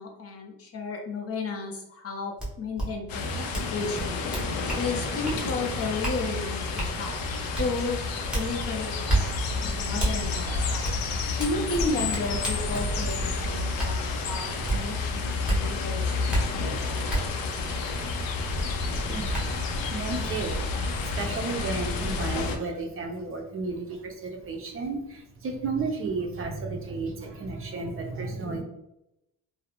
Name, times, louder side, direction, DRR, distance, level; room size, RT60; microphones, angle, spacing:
voice 1, 0.0-4.2 4.7-7.2 7.6-11.0 11.4-16.7, left 3 dB, 45° left, 2 dB, 0.5 m, -33 dB
sound 1, 2.4-2.5 2.8-2.9 3.5-3.7 4.0-4.8 5.2-5.4 6.0-6.2 6.8-6.9 7.5-7.7 8.3-8.5 9.1-9.2 10.0-10.1 10.8-11.0 11.4-13.2 13.8-13.9 14.7-14.8 15.5-15.6 16.3-16.4 17.1-17.2 18.7-18.8 19.3-19.4, right 2 dB, 5° right, 0.7 m, -28 dB
sound 2, 3.1-22.6, left 3 dB, 90° left, 0.5 m, -30 dB
voice 2, 19.9-28.6, right 3 dB, 40° right, 1 dB, 0.5 m, -33 dB
2.4 x 2.0 x 2.8 m, 0.85 s
cardioid pair, 130°, 34 cm